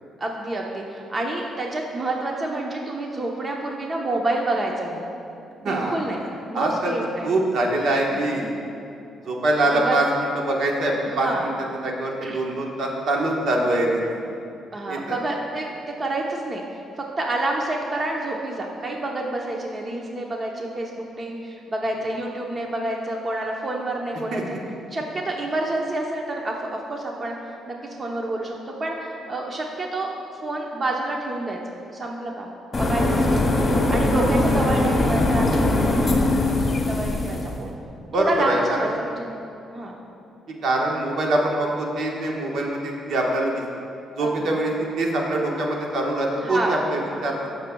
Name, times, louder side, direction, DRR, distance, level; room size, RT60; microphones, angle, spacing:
voice 1, 0.2-5.0 5.6-6.2 6.5-7.3 8.1-8.2 9.7-10.0 11.0-11.5 12.2-12.4 14.7-15.7 16.0-24.6 24.9-27.3 27.7-30.1 30.4-32.5 32.8-33.4 33.9-35.5 36.9-37.7 38.2-39.3 39.7-39.9 44.2-44.3 46.4-46.8 47.1-47.2, right 2 dB, 35° right, 0 dB, 0.8 m, -28 dB
voice 2, 5.6-6.0 6.5-6.9 7.2-8.5 9.2-11.5 11.8-14.1 14.9-15.2 24.3-24.6 33.0-33.1 36.4-36.7 38.1-38.9 40.6-43.6 44.1-47.5, right 1 dB, 65° right, 0 dB, 1.2 m, -24 dB
sound 1, 32.7-37.5, left 2 dB, 30° left, 1.4 m, -21 dB
16.5 x 6.5 x 2.3 m, 2.7 s
cardioid pair, 90°, 0 cm